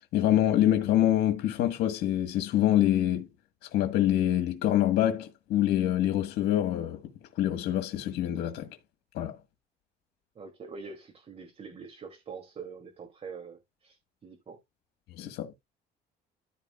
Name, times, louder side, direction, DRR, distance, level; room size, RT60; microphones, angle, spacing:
voice 1, 0.1-3.3 3.7-7.0 7.4-8.7 9.1-9.4 15.2-15.5, left 12 dB, 80° left, 1.5 m, -25 dB
voice 2, 10.3-14.6, right 5 dB, 35° right, 2.7 m, -44 dB
14.0 x 4.6 x 2.4 m
cardioid pair, 110°, 17 cm